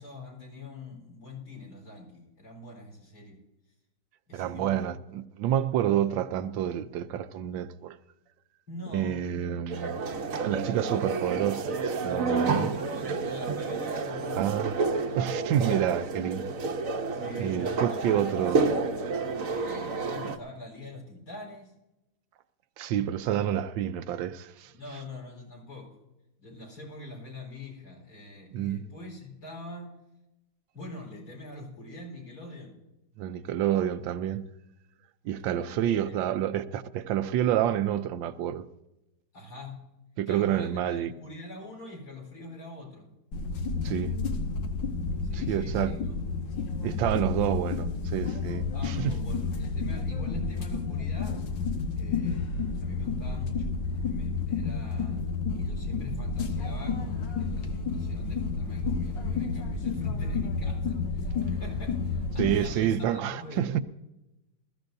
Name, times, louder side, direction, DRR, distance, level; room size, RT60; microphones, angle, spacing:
voice 1, 0.0-3.4 4.3-4.8 8.7-9.7 12.1-14.9 16.6-16.8 17.1-18.6 19.5-21.7 23.4-23.5 24.7-25.9 26.4-30.0 30.7-32.7 35.4-36.1 39.3-39.9 40.3-43.1 45.2-46.2 48.7-51.4 52.0-55.2 55.5-63.8, left 2 dB, 55° left, 4.7 m, -44 dB
voice 2, 4.3-8.0 8.9-10.0 10.4-12.7 14.4-14.7 15.1-16.5 17.4-18.6 22.8-24.7 28.5-28.9 33.2-34.4 35.2-38.7 40.2-41.1 43.8-44.1 45.3-45.9 46.8-49.1 62.4-63.8, right 10 dB, 90° right, 1.4 m, -28 dB
sound 1, 9.7-20.4, right 4 dB, 55° right, 1.1 m, -30 dB
sound 2, 43.3-62.7, left 4 dB, 75° left, 1.9 m, -31 dB
20.5 x 14.5 x 2.6 m
omnidirectional pair, 2.0 m